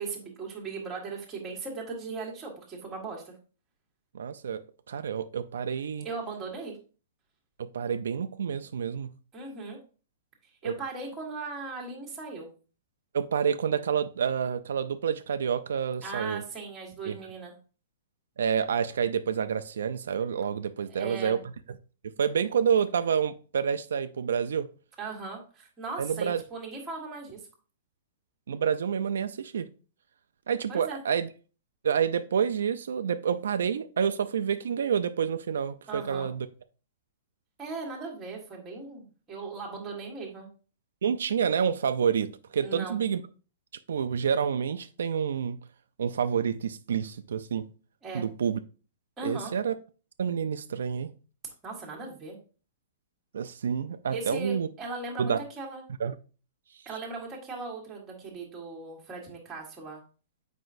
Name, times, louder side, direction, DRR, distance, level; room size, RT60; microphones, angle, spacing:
voice 1, 0.0-3.3 6.0-6.8 9.3-9.8 10.6-12.5 16.0-17.5 20.9-21.4 25.0-27.4 30.7-31.0 35.9-36.3 37.6-40.5 42.6-43.0 48.0-48.3 49.2-49.5 51.6-52.4 54.1-55.8 56.8-60.0, right 3 dB, 10° right, 1.3 m, -38 dB
voice 2, 4.1-4.6 4.9-6.1 7.6-9.1 10.6-10.7 13.1-16.4 17.1-17.2 18.4-21.4 22.0-24.7 26.0-26.4 28.5-29.7 30.5-31.3 31.8-36.5 41.0-43.2 43.9-45.6 46.0-47.7 48.1-48.6 49.2-49.7 50.2-51.1 53.3-54.7 55.2-55.4 56.0-56.1, right 7 dB, 80° right, 0.4 m, -28 dB
7.9 x 5.1 x 2.5 m
hypercardioid pair, 180°, 0 cm